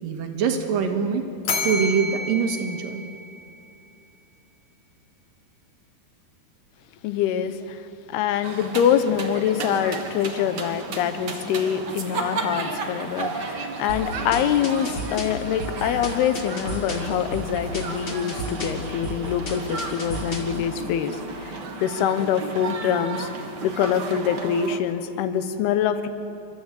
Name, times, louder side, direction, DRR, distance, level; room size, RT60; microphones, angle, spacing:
voice 1, 0.0-1.3 1.6-3.0, right 6 dB, 65° right, 5 dB, 3.1 m, -24 dB
Bell, 1.4-3.7, left 2 dB, 50° left, 3.2 m, -30 dB
voice 2, 7.0-7.8 8.1-23.3 23.6-26.1, left 9 dB, 80° left, 10 dB, 3.0 m, -25 dB
sound 1, 8.4-24.8, right 4 dB, 85° right, 0.9 m, -34 dB
sound 2, 13.9-20.6, left 1 dB, 35° left, 2.2 m, -34 dB
29.5 x 13.0 x 8.4 m, 2.7 s
omnidirectional pair, 4.5 m